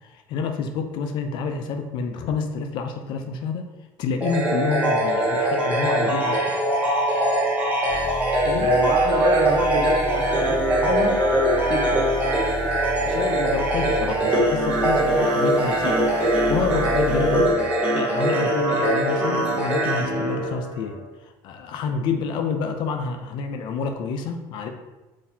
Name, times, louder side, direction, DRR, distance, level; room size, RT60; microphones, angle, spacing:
voice 1, 0.0-3.7 4.0-6.6 8.5-8.7 13.0-16.0 16.3-17.6 17.9-21.0 21.4-24.7, left 5 dB, 60° left, 6 dB, 0.4 m, -28 dB
sound 1, 4.2-21.0, right 1 dB, 15° right, 1.0 m, -22 dB
sound 2, 7.9-17.5, left 2 dB, 10° left, 1.1 m, -35 dB
voice 2, 8.6-11.2 11.5-12.1, right 4 dB, 50° right, 2 dB, 0.6 m, -27 dB
3.8 x 2.7 x 2.7 m, 1.1 s
cardioid pair, 120°, 9 cm